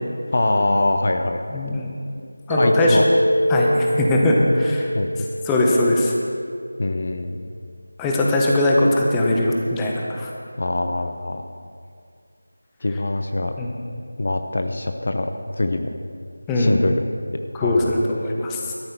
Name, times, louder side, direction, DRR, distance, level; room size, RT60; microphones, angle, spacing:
voice 1, 0.3-1.6 2.5-3.0 4.9-5.3 6.8-7.4 10.6-11.4 12.8-13.5 14.2-15.9 16.6-17.0 17.6-18.1, left 2 dB, 45° left, 6 dB, 0.7 m, -23 dB
voice 2, 1.5-1.9 2.5-3.0 3.5-4.9 5.5-6.1 8.0-10.3 13.6-13.7 16.5-16.7 17.5-18.7, left 1 dB, 10° left, -3 dB, 1.0 m, -20 dB
Mallet percussion, 2.5-6.6, equal, 75° right, 2.4 m, -24 dB
13.0 x 11.5 x 4.4 m, 2.3 s
figure-of-eight pair, 165°, 0 cm